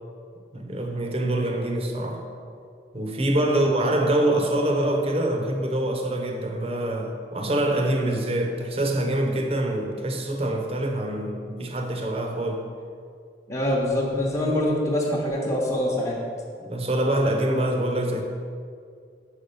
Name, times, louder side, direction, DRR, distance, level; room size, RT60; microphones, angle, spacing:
voice 1, 0.5-2.3 2.9-12.6 16.6-18.2, right 1 dB, 35° right, 3 dB, 0.8 m, -25 dB
voice 2, 13.5-16.2, left 1 dB, 15° left, -4 dB, 1.0 m, -25 dB
6.8 x 4.9 x 6.8 m, 2.3 s
head